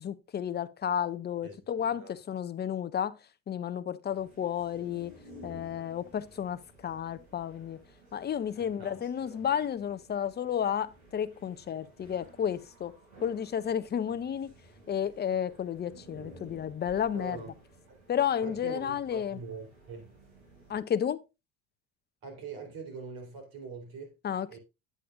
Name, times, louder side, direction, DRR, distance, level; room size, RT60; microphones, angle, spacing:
voice 1, 0.0-3.2 3.5-5.1 5.4-7.8 8.1-12.9 13.2-14.5 14.9-17.4 18.1-19.4 20.7-21.2 24.2-24.6, left 9 dB, 25° left, 0.6 m, -32 dB
voice 2, 1.4-2.2 8.6-9.4 17.1-17.5 17.9-18.0 18.4-20.1 22.2-24.2 24.5-24.6, right 5 dB, 55° right, 3.7 m, -43 dB
sound 1, 4.1-20.8, right 1 dB, 75° right, 5.6 m, -55 dB
8.6 x 8.5 x 2.5 m
hypercardioid pair, 75°, 44 cm